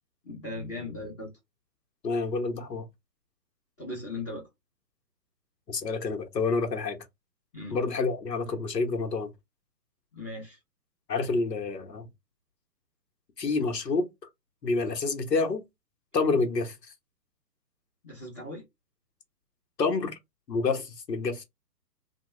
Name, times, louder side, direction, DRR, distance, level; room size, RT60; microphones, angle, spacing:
voice 1, 0.2-1.3 3.8-4.5 7.5-7.8 10.1-10.6 18.0-18.6, left 2 dB, 10° left, 0.7 m, -38 dB
voice 2, 2.0-2.8 5.7-7.0 7.7-9.3 11.1-12.1 13.4-14.1 14.6-15.6 16.1-16.8 19.8-20.1 20.5-21.4, left 4 dB, 85° left, 1.1 m, -28 dB
2.9 x 2.3 x 3.0 m
hypercardioid pair, 135°, 48 cm